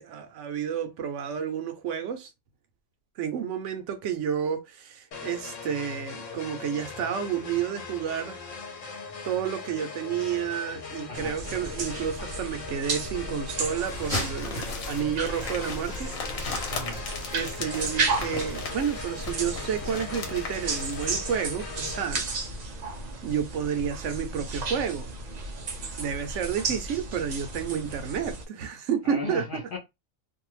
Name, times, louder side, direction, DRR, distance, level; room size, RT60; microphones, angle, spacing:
voice 1, 0.0-2.3 3.2-8.4 9.2-16.6 17.3-22.4 23.2-25.1 26.0-29.4, right 8 dB, 70° right, 0.9 m, -30 dB
sound 1, 5.1-22.0, left 5 dB, 70° left, 1.1 m, -40 dB
sound 2, 11.1-28.4, right 3 dB, 85° right, 0.3 m, -34 dB
sound 3, 13.8-21.1, left 3 dB, 90° left, 1.2 m, -37 dB
voice 2, 16.7-17.0 29.0-29.8, left 2 dB, 50° left, 0.7 m, -35 dB
2.6 x 2.2 x 3.0 m
omnidirectional pair, 1.4 m